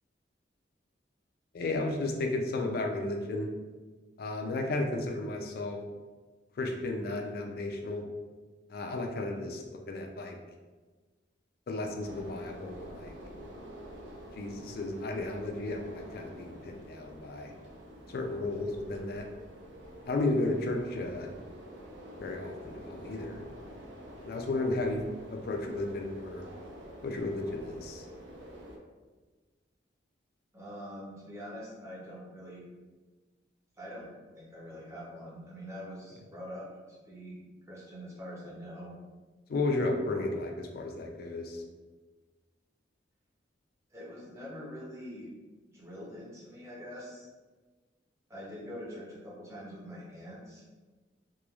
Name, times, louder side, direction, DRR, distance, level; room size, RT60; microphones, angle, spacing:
voice 1, 1.5-3.5 4.2-5.8 6.6-8.1 8.7-10.4 11.7-13.2 14.3-17.5 18.1-19.3 20.1-21.3 22.2-23.4 24.2-25.0 25.3-26.5 27.0-28.0 39.5-41.6, left 2 dB, 55° left, 2 dB, 0.3 m, -33 dB
sound 1, 12.0-28.8, equal, 75° right, 0.5 m, -48 dB
voice 2, 30.5-32.6 33.8-39.0 43.9-45.3 45.7-47.3 48.3-50.6, equal, 15° right, -6 dB, 0.6 m, -44 dB
3.0 x 2.2 x 2.3 m, 1.3 s
head